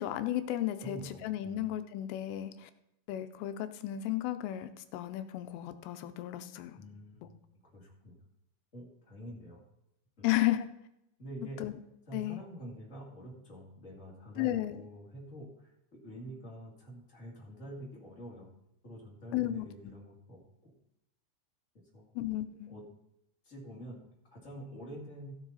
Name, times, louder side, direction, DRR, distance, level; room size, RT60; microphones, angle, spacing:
voice 1, 0.0-2.7 3.1-6.8 10.2-10.7 11.6-11.8 12.1-12.4 14.4-14.9 19.3-19.9 22.2-22.7, left 13 dB, 80° left, 10 dB, 3.1 m, -34 dB
voice 2, 0.8-1.6 6.7-7.3 7.7-8.1 8.7-9.6 10.2-10.3 11.2-11.6 12.1-18.5 18.8-20.7 21.9-22.0 22.7-22.8 23.4-24.0 24.3-25.3, right 1 dB, 30° left, -3 dB, 1.5 m, -47 dB
15.5 x 7.3 x 4.1 m, 0.84 s
omnidirectional pair, 5.8 m